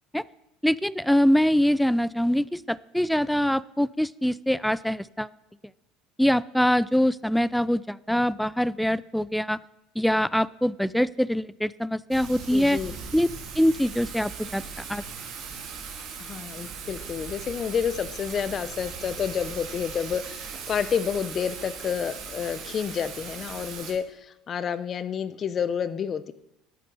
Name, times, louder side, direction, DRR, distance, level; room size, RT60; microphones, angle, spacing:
voice 1, 0.6-5.3 6.2-9.6 10.0-12.8 13.1-13.3 13.6-14.6 14.9-15.0, equal, ahead, 19 dB, 0.3 m, -23 dB
Thunder / Rain, 12.1-23.9, right 6 dB, 50° right, 3.2 m, -39 dB
voice 2, 12.5-12.9 16.2-26.3, left 7 dB, 35° left, 14 dB, 0.7 m, -29 dB
13.0 x 8.7 x 5.4 m, 0.86 s
supercardioid pair, 120°, 0 cm